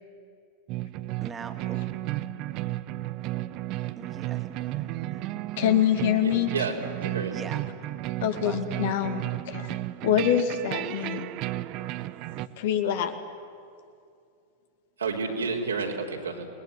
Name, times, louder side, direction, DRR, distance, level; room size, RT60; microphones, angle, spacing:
sound 1, 0.7-12.5, right 16 dB, 40° right, 0.8 m, -33 dB
voice 1, 1.2-1.8 4.0-5.4 7.3-7.6 8.3-8.8, right 6 dB, 20° right, 5 dB, 2.6 m, -42 dB
voice 2, 5.6-6.5 8.2-9.7 10.0-11.3 12.6-13.1, left 9 dB, 55° left, 8 dB, 2.2 m, -25 dB
voice 3, 6.2-6.8 7.0-7.4 15.0-16.5, right 4 dB, 70° right, 1 dB, 3.6 m, -30 dB
29.0 x 21.0 x 9.4 m, 2.4 s
figure-of-eight pair, 90°, 0 cm